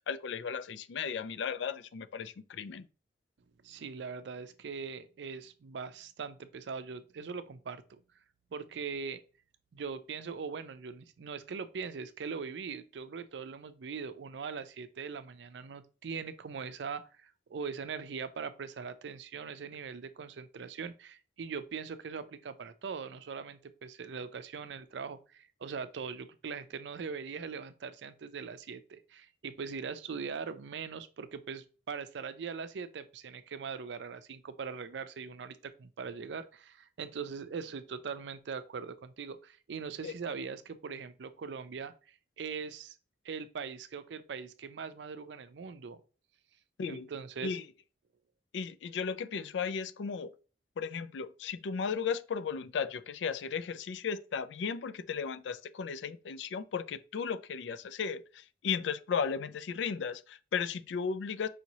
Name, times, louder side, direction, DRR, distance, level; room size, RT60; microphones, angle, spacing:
voice 1, 0.1-2.8 40.0-40.1 46.8-47.1 47.4-47.6 48.5-50.3 50.8-61.5, left 6 dB, 85° left, 0.4 m, -35 dB
voice 2, 3.6-8.0 8.5-9.2 9.7-43.0 43.2-46.0 46.9-47.6, right 5 dB, 75° right, 0.4 m, -41 dB
4.8 x 2.7 x 3.0 m
head